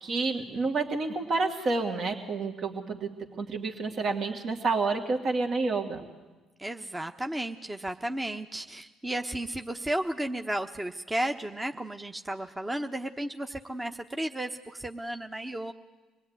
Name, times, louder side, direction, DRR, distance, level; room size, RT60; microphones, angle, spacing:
voice 1, 0.0-3.1 3.4-6.0, right 3 dB, 55° right, 3 dB, 2.5 m, -29 dB
voice 2, 6.6-15.7, right 1 dB, 15° right, 5 dB, 1.2 m, -33 dB
26.0 x 19.5 x 9.6 m, 1.2 s
hypercardioid pair, 55°, 0 cm